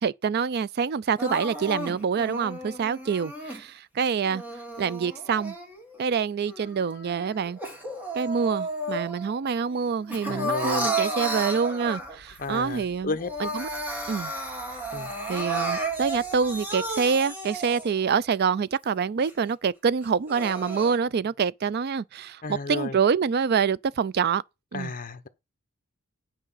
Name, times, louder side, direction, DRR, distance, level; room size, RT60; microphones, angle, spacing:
voice 1, 0.0-4.4 4.8-5.5 6.0-7.6 8.1-13.1 13.4-13.7 14.1-14.3 15.3-22.4 22.7-24.4 24.7-24.9, right 6 dB, 50° right, 0.4 m, -26 dB
Crying sobbing, 1.2-3.6 4.2-6.0 6.5-9.4 9.7-12.4 12.8-12.9 13.2-18.0 18.5-18.6 19.2-19.3 20.0-21.0, right 2 dB, 10° right, 2.0 m, -33 dB
voice 2, 10.2-10.9 12.4-13.3 14.9-15.1 22.4-23.0 24.7-25.3, left 3 dB, 40° left, 0.9 m, -33 dB
sound 1, 11.9-16.9, left 1 dB, 75° right, 2.7 m, -56 dB
9.1 x 4.9 x 5.5 m
head